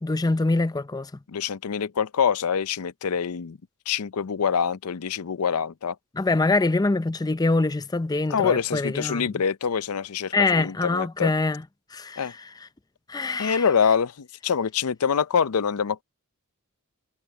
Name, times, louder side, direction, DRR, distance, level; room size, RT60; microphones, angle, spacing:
voice 1, 0.0-1.1 6.2-9.4 10.3-11.6 11.9-12.5 13.1-13.6, left 3 dB, 15° left, 0.5 m, -24 dB
voice 2, 1.3-3.6 3.9-6.0 8.3-11.3 12.2-12.3 13.4-16.0, left 6 dB, 75° left, 0.5 m, -25 dB
head